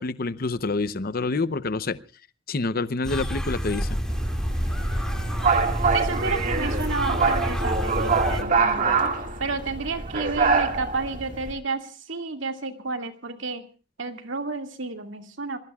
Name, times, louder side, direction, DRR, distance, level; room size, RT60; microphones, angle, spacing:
voice 1, 0.0-2.0 2.5-4.0, left 3 dB, 50° left, 14 dB, 0.8 m, -27 dB
sound 1, 3.0-8.4, equal, 5° left, 2.2 m, -28 dB
sound 2, 4.1-11.5, right 4 dB, 45° right, 2.1 m, -25 dB
Bowed string instrument, 4.5-9.8, left 2 dB, 60° right, 3.1 m, -39 dB
voice 2, 5.9-9.1 9.4-13.7 14.0-15.6, right 3 dB, 85° right, 5 dB, 2.3 m, -31 dB
26.0 x 20.5 x 2.4 m, 0.36 s
head